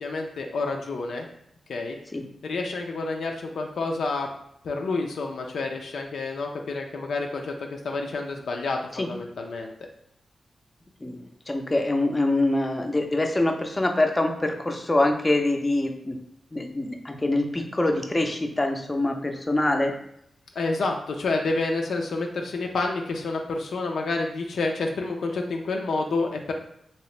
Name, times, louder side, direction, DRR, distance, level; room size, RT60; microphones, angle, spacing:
voice 1, 0.0-1.3 1.7-2.0 2.4-4.3 4.6-9.7 20.6-26.5, left 3 dB, 80° left, 2 dB, 0.4 m, -29 dB
voice 2, 11.0-16.2 16.5-19.9, left 2 dB, 25° left, 3 dB, 0.5 m, -24 dB
2.9 x 2.8 x 3.2 m, 0.74 s
cardioid pair, 55°, 0 cm